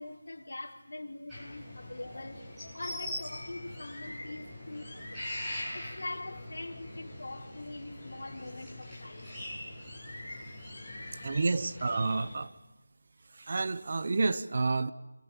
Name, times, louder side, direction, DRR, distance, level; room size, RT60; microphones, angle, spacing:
voice 1, 0.0-2.4 2.7-5.3 5.7-9.4 10.3-11.5, left 2 dB, 60° left, 4.7 m, -43 dB
sound 1, 1.3-12.4, left 1 dB, 5° right, 7.8 m, -42 dB
voice 2, 11.2-12.5 13.3-14.9, right 3 dB, 35° right, 0.9 m, -29 dB
28.0 x 28.0 x 7.4 m
figure-of-eight pair, 175°, 0 cm